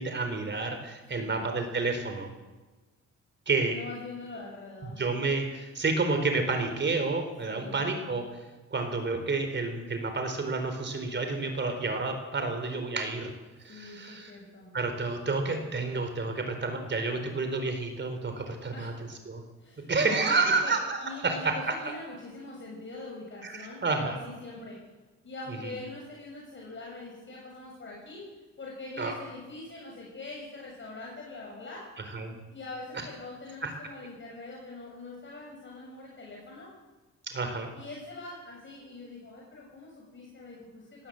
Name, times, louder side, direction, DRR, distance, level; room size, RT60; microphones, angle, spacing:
voice 1, 0.0-2.3 3.5-3.8 4.8-8.2 8.7-13.3 13.6-14.3 14.7-18.9 19.3-19.4 19.9-21.0 21.2-21.9 23.4-24.2 25.6-25.7 29.0-29.1 32.1-32.4 33.6-33.7 37.3-37.7, right 3 dB, 35° right, 6 dB, 4.1 m, -30 dB
voice 2, 1.1-1.5 3.6-5.0 7.4-7.9 13.7-14.7 18.7-19.0 19.6-20.8 21.0-24.8 25.2-28.3 28.6-31.9 32.5-36.7 37.7-41.1, left 3 dB, 40° left, -2 dB, 6.5 m, -43 dB
19.0 x 18.0 x 7.9 m, 1.2 s
cardioid pair, 90°, 30 cm